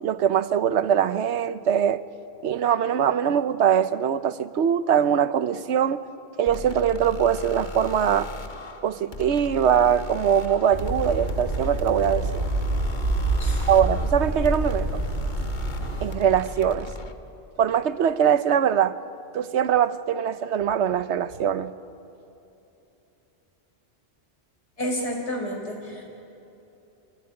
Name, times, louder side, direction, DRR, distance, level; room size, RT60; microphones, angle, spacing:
voice 1, 0.0-2.0 2.4-6.0 6.4-8.3 8.8-12.5 13.7-15.0 16.0-16.9 17.6-19.0 19.3-21.7, right 8 dB, 85° right, 1.0 m, -22 dB
sound 1, 6.5-17.1, left 3 dB, 45° left, 1.3 m, -37 dB
sound 2, 10.7-16.1, right 2 dB, 60° right, 5.1 m, -27 dB
voice 2, 24.8-26.0, equal, 85° left, 4.7 m, -30 dB
27.5 x 17.5 x 9.8 m
omnidirectional pair, 1.1 m